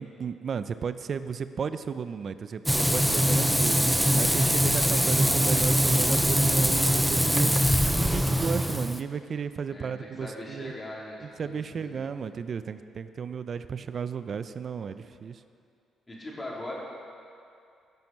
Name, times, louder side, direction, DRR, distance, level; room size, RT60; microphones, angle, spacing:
voice 1, 0.0-7.6 7.9-10.7 11.2-15.4, right 6 dB, 50° right, 12 dB, 0.5 m, -34 dB
Frying (food), 2.7-9.0, equal, 5° right, 0.5 m, -23 dB
voice 2, 10.2-12.1 16.1-16.7, left 1 dB, 20° left, -4 dB, 3.1 m, -40 dB
17.5 x 6.1 x 5.3 m, 2.5 s
cardioid pair, 90°, 0 cm